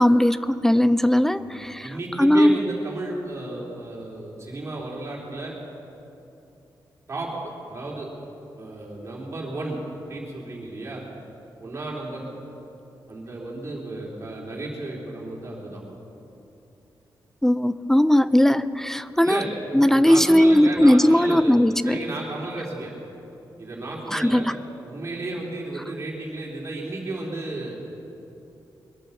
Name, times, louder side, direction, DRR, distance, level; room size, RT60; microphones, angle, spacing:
voice 1, 0.0-2.6 17.4-19.4 19.7-22.0 24.1-24.5, left 1 dB, 5° left, 14 dB, 0.3 m, -18 dB
voice 2, 1.4-5.6 7.1-7.3 7.7-8.1 8.6-9.8 10.0-11.0 11.6-12.2 13.1-15.8 19.2-19.5 19.8-21.5 21.8-22.9 23.6-24.5 24.8-27.8, right 2 dB, 35° right, -3 dB, 3.3 m, -33 dB
21.5 x 9.3 x 7.1 m, 2.9 s
wide cardioid pair, 165°, 8 cm